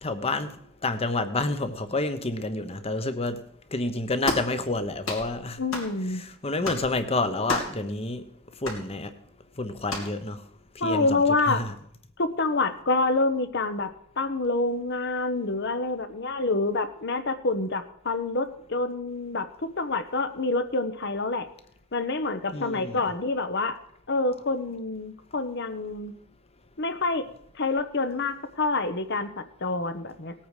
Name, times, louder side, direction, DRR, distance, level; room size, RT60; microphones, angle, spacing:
voice 1, 0.0-0.6 0.8-3.4 3.7-5.6 6.1-8.2 8.6-9.1 9.6-10.4 10.7-11.7 22.5-23.0, left 2 dB, 30° left, 1.0 m, -29 dB
sound 1, 4.2-4.5 5.0-5.3 5.7-5.9 6.6-6.9 7.5-7.8 8.6-8.8 9.9-10.1, left 1 dB, 75° left, 3.1 m, -31 dB
voice 2, 5.6-6.2 10.0-10.1 10.8-11.6 12.2-13.9 14.2-21.5 21.9-23.8 24.1-26.1 26.8-27.3 27.6-30.3, left 3 dB, 55° left, 1.1 m, -27 dB
18.5 x 8.7 x 5.0 m
head